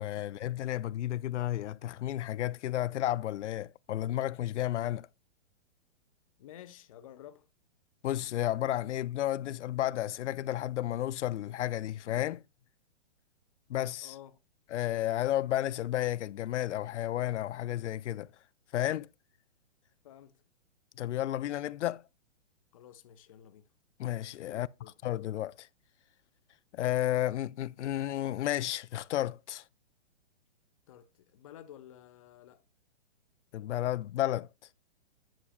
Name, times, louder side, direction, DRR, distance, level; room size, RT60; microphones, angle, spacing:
voice 1, 0.0-5.1 8.0-12.4 13.7-14.1 14.7-18.3 18.7-19.1 21.0-22.0 24.0-24.7 25.0-25.7 26.7-29.6 33.5-34.5, left 13 dB, 85° left, 0.5 m, -32 dB
voice 2, 6.4-7.5 14.0-14.4 20.0-20.4 22.7-23.7 24.5-24.9 30.9-32.6, left 11 dB, 30° left, 0.5 m, -52 dB
10.0 x 6.1 x 2.4 m
hypercardioid pair, 155°, 34 cm